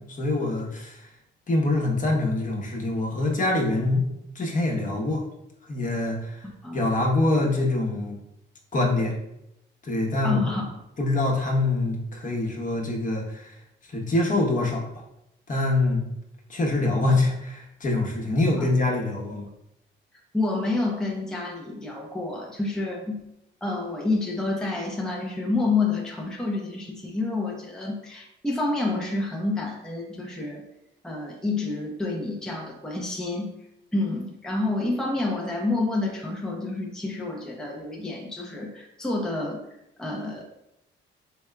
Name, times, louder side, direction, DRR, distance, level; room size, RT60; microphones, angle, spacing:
voice 1, 0.2-1.1 1.5-4.1 4.3-5.2 5.7-6.5 6.7-8.2 8.7-9.1 9.8-10.4 11.0-13.6 13.9-14.8 15.5-16.0 16.5-19.5, left 2 dB, 40° left, -1 dB, 1.0 m, -24 dB
voice 2, 10.2-10.7 18.6-18.7 20.3-23.2 23.6-30.6 31.0-33.5 33.9-39.7 40.0-40.4, left 2 dB, 5° left, -2 dB, 0.6 m, -28 dB
4.5 x 3.4 x 2.2 m, 0.83 s
cardioid pair, 90°, 20 cm